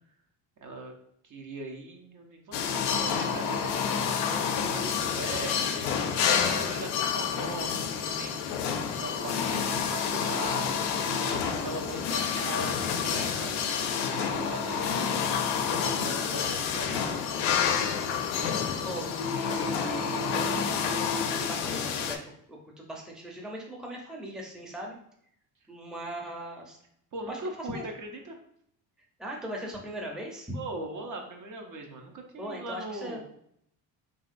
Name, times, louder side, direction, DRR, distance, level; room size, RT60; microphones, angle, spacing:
voice 1, 0.6-0.9 1.2-8.7 9.0-14.9 15.8-17.5 27.1-28.4 30.5-33.2, right 2 dB, 45° right, 2 dB, 0.8 m, -40 dB
sound 1, 2.5-22.2, left 7 dB, 70° left, 0.6 m, -29 dB
voice 2, 18.8-20.3 21.4-24.9 25.7-26.8 27.3-27.8 29.2-30.5 32.4-33.2, equal, ahead, -1 dB, 0.7 m, -39 dB
3.0 x 2.8 x 2.5 m, 0.70 s
supercardioid pair, 70°, 42 cm